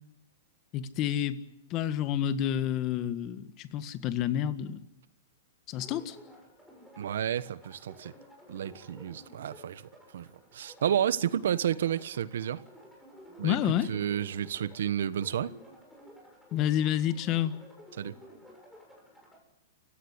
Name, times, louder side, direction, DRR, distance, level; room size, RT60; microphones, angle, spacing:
voice 1, 0.7-1.4 1.7-4.8 5.7-6.2 13.4-13.9 16.5-17.5, left 10 dB, 30° left, 1.7 m, -29 dB
sound 1, 5.7-19.4, equal, ahead, 7.4 m, -53 dB
voice 2, 7.0-8.1 8.5-10.3 10.5-12.6 13.4-15.5 18.0-18.1, right 9 dB, 75° right, 1.3 m, -31 dB
29.5 x 16.5 x 9.9 m
hypercardioid pair, 155°, 0 cm